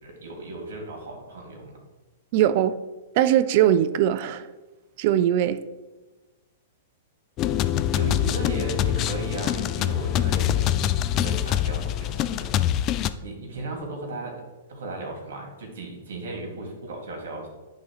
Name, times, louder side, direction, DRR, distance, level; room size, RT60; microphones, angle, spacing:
voice 1, 0.0-1.8 7.9-10.8 11.1-12.5 13.2-14.4 14.7-17.5, right 2 dB, 70° right, 2.2 m, -35 dB
voice 2, 2.3-2.7 3.2-4.5 5.0-5.6, right 11 dB, 50° right, 0.4 m, -20 dB
sound 1, 7.4-13.1, left 11 dB, 35° left, 0.3 m, -24 dB
10.5 x 3.8 x 3.1 m
hypercardioid pair, 115°, 0 cm